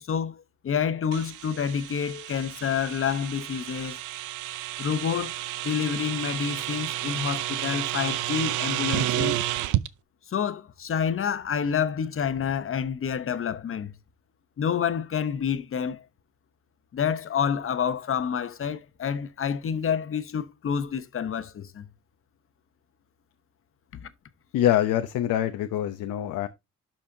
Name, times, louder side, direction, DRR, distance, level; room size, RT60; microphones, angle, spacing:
voice 1, 0.0-4.0 4.8-5.3 5.6-9.4 10.3-13.9 14.6-16.0 16.9-21.9 24.0-24.1, left 7 dB, 45° left, 1.0 m, -28 dB
sound 1, 1.1-9.9, right 14 dB, 90° right, 0.6 m, -31 dB
voice 2, 24.5-26.5, left 12 dB, 85° left, 0.8 m, -24 dB
12.0 x 4.3 x 2.8 m
cardioid pair, 90°, 30 cm